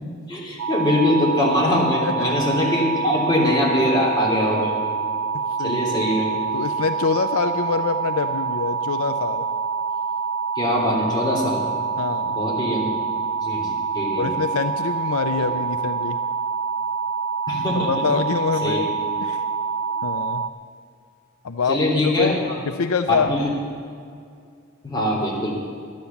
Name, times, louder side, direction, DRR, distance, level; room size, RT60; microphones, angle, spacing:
voice 1, 0.3-4.7 5.6-6.3 10.5-11.7 12.3-13.0 13.4-14.3 17.5-17.9 18.6-18.8 21.7-22.4 23.1-23.5 24.8-25.5, left 1 dB, 20° left, -5 dB, 3.3 m, -22 dB
sound 1, 0.6-20.5, right 5 dB, 70° right, 0.5 m, -26 dB
voice 2, 2.0-2.3 5.6-5.8 6.5-9.5 12.0-12.4 14.2-16.2 17.7-19.4 20.0-20.4 21.4-22.4 22.6-23.3, left 5 dB, 80° left, 9 dB, 0.5 m, -25 dB
12.0 x 10.5 x 7.1 m, 2.3 s
head